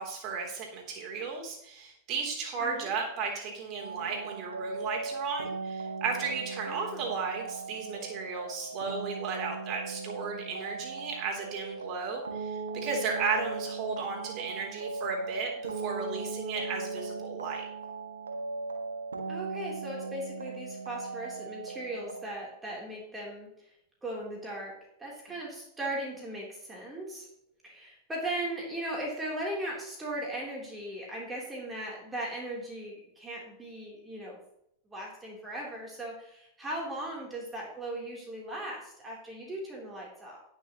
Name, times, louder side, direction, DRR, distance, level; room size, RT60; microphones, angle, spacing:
voice 1, 0.0-17.6, right 5 dB, 35° right, 0 dB, 3.3 m, -35 dB
voice 2, 2.6-2.9 6.7-7.1 19.3-23.7 24.0-27.3 27.6-34.4 34.9-40.4, right 1 dB, 10° right, -3 dB, 3.5 m, -38 dB
sound 1, 3.8-22.3, right 3 dB, 75° right, 1.5 m, -38 dB
18.5 x 6.4 x 3.1 m, 0.76 s
figure-of-eight pair, 90°, 0 cm